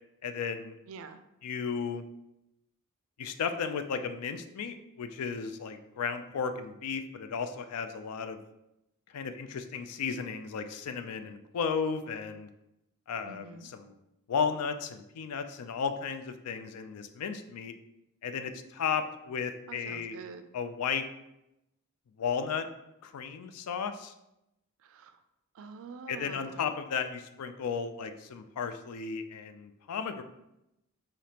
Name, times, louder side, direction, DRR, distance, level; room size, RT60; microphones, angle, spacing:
voice 1, 0.2-0.8 1.4-2.0 3.2-8.4 9.1-12.5 13.1-14.0 14.3-17.7 18.2-20.2 20.5-21.0 22.2-22.7 23.0-24.1 26.1-30.2, left 6 dB, 85° left, 9 dB, 0.4 m, -34 dB
voice 2, 0.9-1.2 13.2-13.7 19.7-20.5 24.8-25.2 25.5-26.6, right 5 dB, 60° right, 9 dB, 0.3 m, -46 dB
5.0 x 2.8 x 2.8 m, 0.87 s
head